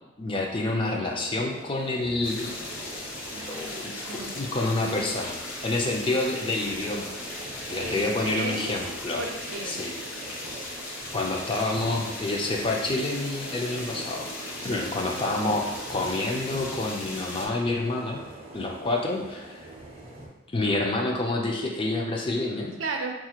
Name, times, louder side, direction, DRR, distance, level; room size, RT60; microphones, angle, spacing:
voice 1, 0.2-2.5 3.5-3.9 4.3-5.4 5.6-7.1 7.7-9.2 9.7-9.9 11.1-14.3 14.6-18.2 18.5-19.7 20.5-22.7, left 2 dB, 25° left, 1 dB, 0.4 m, -28 dB
sound 1, 1.2-20.3, right 2 dB, 30° right, 0.6 m, -43 dB
sound 2, 2.2-17.5, left 2 dB, 70° left, 0.7 m, -38 dB
voice 2, 3.3-4.4 7.8-8.7 9.2-9.8 14.7-14.9 22.8-23.1, right 3 dB, 70° right, 3 dB, 0.5 m, -35 dB
4.1 x 2.4 x 2.9 m, 1.1 s
head